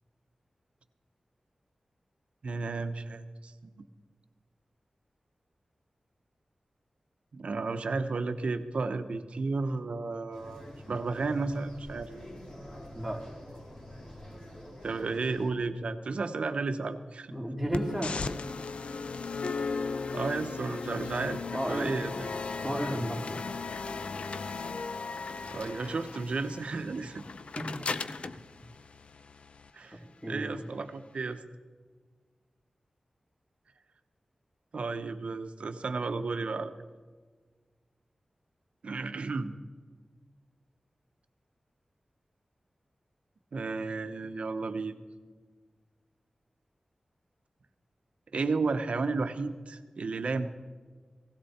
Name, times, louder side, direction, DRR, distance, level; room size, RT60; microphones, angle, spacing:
voice 1, 2.4-3.7 7.3-12.1 14.8-17.3 20.1-21.4 21.7-22.3 25.5-27.2 29.7-30.0 30.3-31.4 34.7-36.7 38.8-39.5 43.5-45.0 48.3-50.5, right 3 dB, 80° right, 9 dB, 0.9 m, -33 dB
sound 1, 10.3-15.5, equal, 40° left, 2.9 m, -47 dB
voice 2, 17.3-18.2 21.5-22.0 22.6-23.6 27.6-27.9 28.2-28.3 30.2-30.6, equal, 5° right, -1 dB, 2.3 m, -33 dB
sound 2, 17.7-29.7, left 4 dB, 70° left, 0.5 m, -37 dB
17.0 x 16.0 x 4.3 m, 1.5 s
wide cardioid pair, 95°, 2 cm